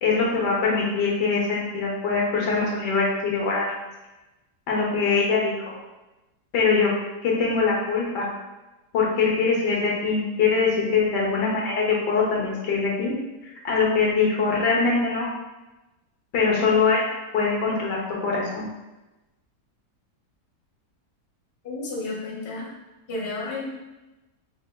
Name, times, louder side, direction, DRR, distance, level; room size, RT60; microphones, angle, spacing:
voice 1, 0.0-3.7 4.7-5.7 6.5-6.9 7.2-8.3 8.9-13.1 13.6-15.3 16.3-17.0 17.3-18.0 18.2-18.7, left 4 dB, 80° left, -3 dB, 1.5 m, -22 dB
voice 2, 21.6-22.7 23.1-23.6, left 2 dB, 40° left, -4 dB, 0.8 m, -32 dB
4.8 x 3.3 x 2.2 m, 1.0 s
omnidirectional pair, 1.8 m